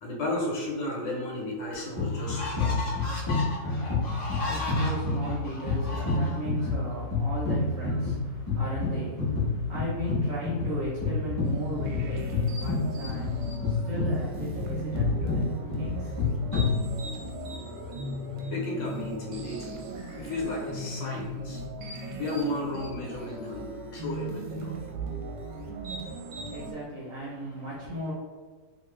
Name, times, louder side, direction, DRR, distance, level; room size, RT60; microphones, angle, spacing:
voice 1, 0.0-2.9 18.5-19.8 20.2-21.6 22.2-24.7, left 1 dB, 80° left, -3 dB, 1.5 m, -33 dB
sound 1, 1.1-1.2 1.7-6.7, left 2 dB, 55° left, 1.1 m, -36 dB
sound 2, 2.0-17.3, left 3 dB, 15° left, 0.9 m, -29 dB
voice 2, 4.0-16.3 26.0-28.1, right 1 dB, 65° right, -6 dB, 0.8 m, -37 dB
sound 3, 11.4-26.7, right 2 dB, 90° right, 1.3 m, -37 dB
2.9 x 2.4 x 3.1 m, 1.4 s
omnidirectional pair, 2.0 m